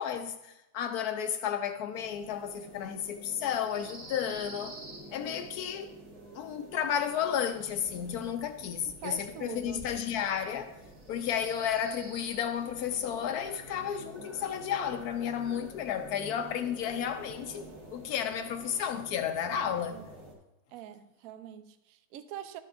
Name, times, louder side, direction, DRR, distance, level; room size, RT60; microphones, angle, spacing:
voice 1, 0.0-4.8 5.1-5.9 6.3-10.7 11.1-20.1, left 8 dB, 75° left, 0.8 m, -32 dB
sound 1, 1.9-20.3, right 1 dB, 40° right, 2.7 m, -48 dB
voice 2, 9.0-9.8 19.7-20.0 20.7-22.6, right 10 dB, 80° right, 0.7 m, -44 dB
12.5 x 6.8 x 2.4 m
omnidirectional pair, 2.2 m